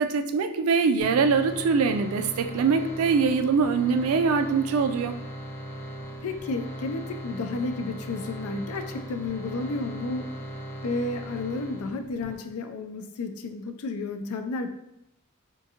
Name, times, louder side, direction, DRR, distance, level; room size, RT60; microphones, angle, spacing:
voice 1, 0.0-5.1, right 5 dB, 80° right, 8 dB, 0.3 m, -23 dB
sound 1, 1.0-12.3, equal, 10° left, 0.4 m, -38 dB
voice 2, 6.2-10.3 10.8-14.7, left 3 dB, 85° left, 7 dB, 0.4 m, -32 dB
3.7 x 2.5 x 2.7 m, 0.80 s
head